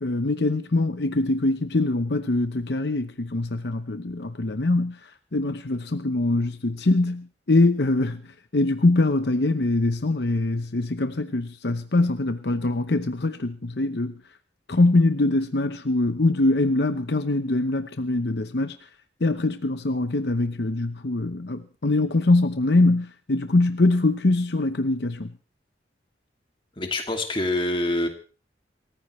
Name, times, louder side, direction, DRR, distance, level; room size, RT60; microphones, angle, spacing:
voice 1, 0.0-5.0 5.3-8.2 8.5-14.1 14.7-18.8 19.2-25.3, left 2 dB, 65° left, 0.9 m, -23 dB
voice 2, 26.8-28.1, left 1 dB, 30° left, 2.5 m, -25 dB
27.0 x 14.5 x 3.2 m
head